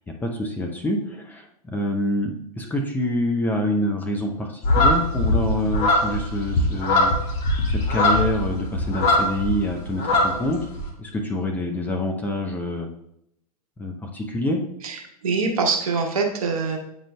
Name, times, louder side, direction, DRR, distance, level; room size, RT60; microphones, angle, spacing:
voice 1, 0.1-7.1 7.7-10.7 11.0-12.9 13.8-14.6, left 1 dB, 10° left, 1 dB, 0.6 m, -26 dB
sound 1, 4.6-9.6 9.9-10.8, left 1 dB, 35° left, 1.5 m, -21 dB
voice 2, 14.8-16.8, right 4 dB, 60° right, 2 dB, 1.2 m, -24 dB
8.8 x 5.1 x 2.2 m, 0.76 s
figure-of-eight pair, 105°, 20 cm